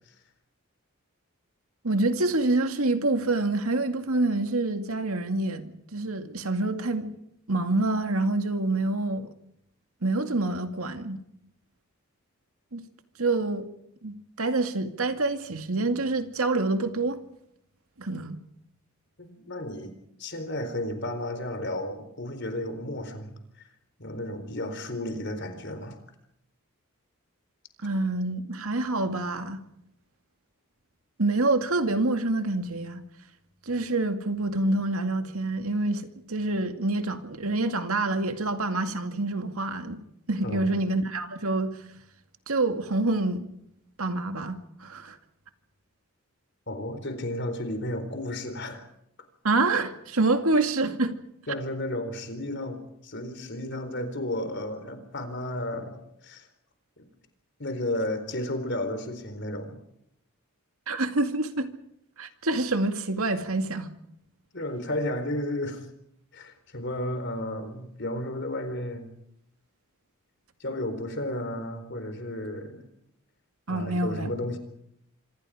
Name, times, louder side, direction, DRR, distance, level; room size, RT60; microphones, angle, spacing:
voice 1, 1.8-7.1 7.5-9.3 10.0-11.2 12.7-12.8 13.2-13.6 14.0-17.2 18.0-18.4 27.8-29.6 31.2-33.0 33.7-40.0 40.3-41.7 42.5-43.5 44.0-45.2 49.4-51.1 60.9-61.7 62.2-63.9 73.7-74.3, right 2 dB, 80° right, 2.3 m, -27 dB
voice 2, 19.2-19.9 20.2-23.3 23.6-23.7 24.0-26.0 40.4-40.7 46.7-48.8 51.5-56.5 57.0-57.1 57.6-59.8 64.5-65.9 66.3-69.1 70.6-72.8 73.7-74.6, left 1 dB, 50° left, 4.1 m, -33 dB
26.0 x 26.0 x 5.0 m
head